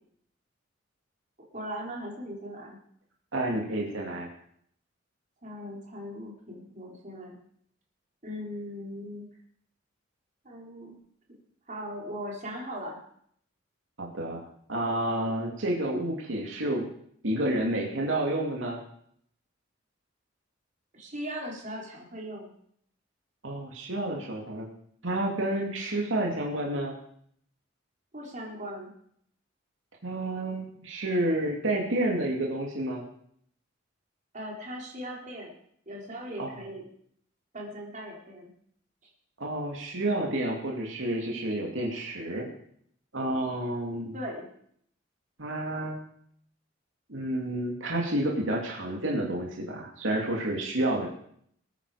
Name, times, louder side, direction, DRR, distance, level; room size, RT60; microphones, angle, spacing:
voice 1, 1.5-2.8 5.4-7.4 8.2-9.3 10.4-10.9 11.3-11.4 11.7-13.0 20.9-22.5 28.1-28.9 34.3-35.5 35.9-36.8 37.5-38.5 44.1-44.5, equal, 40° right, -2 dB, 3.9 m, -39 dB
voice 2, 3.3-4.3 14.0-14.4 14.7-16.9 17.2-18.8 23.4-24.7 25.0-27.0 30.0-33.0 36.4-36.5 39.4-42.5 43.1-44.1 45.4-46.0 47.1-51.1, right 1 dB, 85° right, 0 dB, 2.5 m, -30 dB
20.5 x 9.3 x 5.0 m, 0.66 s
head